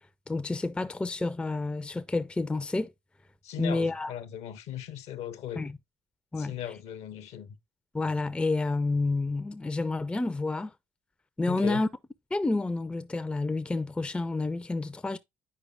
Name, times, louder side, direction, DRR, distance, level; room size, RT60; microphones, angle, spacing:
voice 1, 0.3-2.9 3.6-4.1 5.6-5.8 6.3-6.6 7.9-10.7 11.4-11.9 12.3-15.2, left 3 dB, 10° left, 0.4 m, -29 dB
voice 2, 3.4-5.7 6.4-7.6 11.5-11.8, left 10 dB, 60° left, 0.7 m, -38 dB
8.4 x 5.0 x 2.2 m
hypercardioid pair, 55°, 13 cm